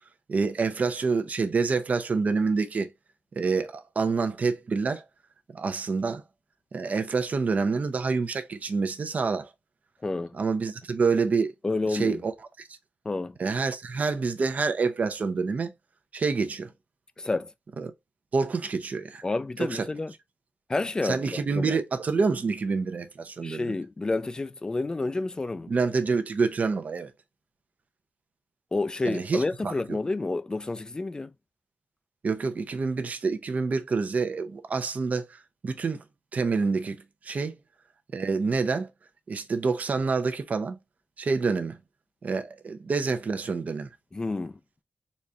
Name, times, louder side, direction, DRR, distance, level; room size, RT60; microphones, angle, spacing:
voice 1, 0.3-2.9 3.4-5.0 5.5-6.2 6.7-9.5 10.3-11.5 11.9-12.3 12.6-12.7 13.4-15.7 16.1-16.7 17.8-17.9 18.3-19.2 19.6-19.8 21.0-23.7 25.7-27.1 29.0-30.0 32.2-36.0 36.3-37.5 38.1-38.9 39.3-40.8 41.2-41.8 42.2-43.9, right 4 dB, 50° right, 0.6 m, -27 dB
voice 2, 10.0-10.4 11.6-12.2 13.1-13.4 17.2-17.5 19.2-20.1 20.7-21.7 23.4-25.7 28.7-31.3 44.1-44.6, left 3 dB, 20° left, 0.4 m, -29 dB
4.1 x 2.5 x 3.1 m
wide cardioid pair, 135°, 3 cm